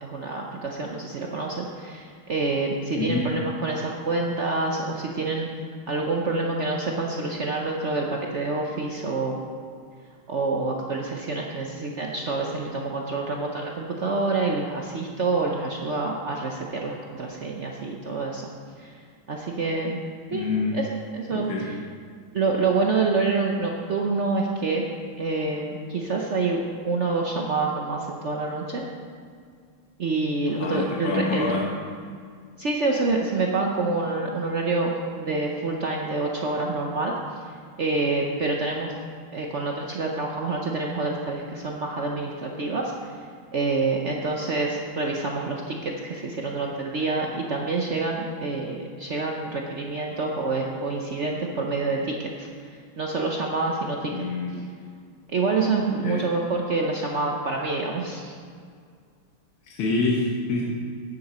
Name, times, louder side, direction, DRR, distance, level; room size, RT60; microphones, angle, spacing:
voice 1, 0.0-5.5 5.9-9.5 10.3-18.5 18.8-19.0 19.3-20.0 20.3-20.5 20.7-20.8 21.1-21.7 22.3-24.9 25.2-28.9 30.0-31.6 32.6-34.9 35.2-37.1 37.8-38.9 39.3-43.1 43.5-54.1 55.3-58.4, right 3 dB, 70° right, 0 dB, 0.6 m, -27 dB
voice 2, 3.0-3.3 20.3-20.8 21.3-21.7 30.5-31.7 54.1-54.6 55.9-56.3 59.6-60.6, left 3 dB, 90° left, -3 dB, 2.1 m, -27 dB
10.5 x 9.6 x 4.3 m, 2.1 s
omnidirectional pair, 2.3 m